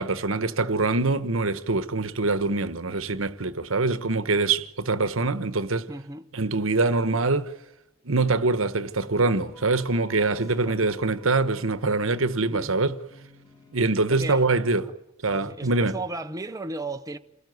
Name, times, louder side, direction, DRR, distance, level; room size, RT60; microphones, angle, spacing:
voice 1, 0.0-5.9 6.3-7.5 8.0-13.0 13.7-14.8 15.2-15.9, right 3 dB, 75° right, 1.3 m, -24 dB
voice 2, 5.9-6.2 10.6-10.8 12.5-12.8 14.1-14.5 14.8-14.9 15.3-17.2, right 2 dB, 15° right, 0.9 m, -35 dB
sound 1, 8.3-13.9, left 2 dB, 20° left, 3.8 m, -54 dB
29.0 x 19.0 x 9.5 m
head